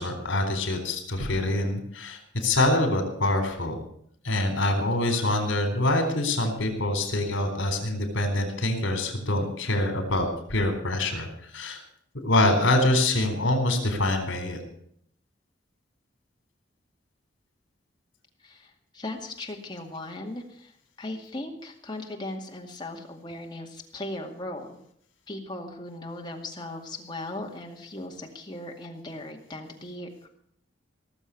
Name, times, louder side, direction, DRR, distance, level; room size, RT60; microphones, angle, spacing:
voice 1, 0.0-3.8 4.2-11.8 12.1-14.6, left 1 dB, 75° left, 5 dB, 4.1 m, -25 dB
voice 2, 18.4-20.7 21.0-24.8 25.3-30.3, left 1 dB, 25° left, 1 dB, 2.2 m, -38 dB
18.0 x 7.3 x 8.5 m, 0.67 s
head